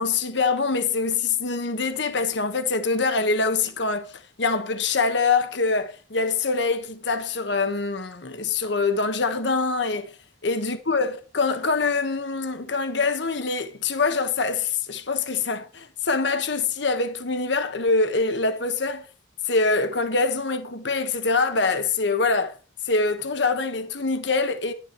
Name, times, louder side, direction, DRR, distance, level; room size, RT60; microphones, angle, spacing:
voice 1, 0.0-10.1 10.4-19.1 19.5-22.6 22.9-24.7, left 4 dB, 65° left, 1.3 m, -24 dB
11.0 x 7.3 x 4.5 m
head